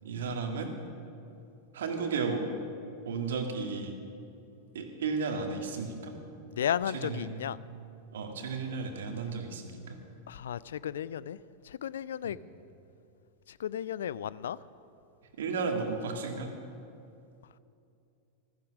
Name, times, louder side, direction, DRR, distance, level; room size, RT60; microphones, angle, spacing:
voice 1, 0.0-0.7 1.7-2.4 3.1-4.0 4.7-6.1 7.0-7.5 8.1-10.0 12.2-12.4 15.4-16.5, right 4 dB, 60° right, 4 dB, 1.9 m, -34 dB
voice 2, 6.5-7.6 10.3-11.4 11.6-12.4 13.5-14.6, left 9 dB, 60° left, 19 dB, 0.4 m, -34 dB
15.5 x 13.5 x 6.3 m, 2.6 s
figure-of-eight pair, 90°, 0 cm